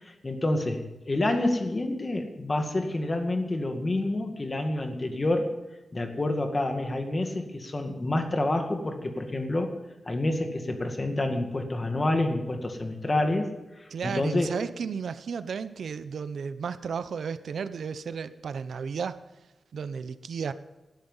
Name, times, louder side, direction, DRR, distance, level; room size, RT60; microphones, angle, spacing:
voice 1, 0.2-5.5 5.9-9.8 10.1-13.5 14.0-14.6, left 2 dB, 25° left, 5 dB, 2.0 m, -28 dB
voice 2, 13.9-19.2 19.7-20.5, right 6 dB, 80° right, 13 dB, 0.8 m, -33 dB
19.0 x 12.5 x 5.6 m, 1.1 s
wide cardioid pair, 175°, 0 cm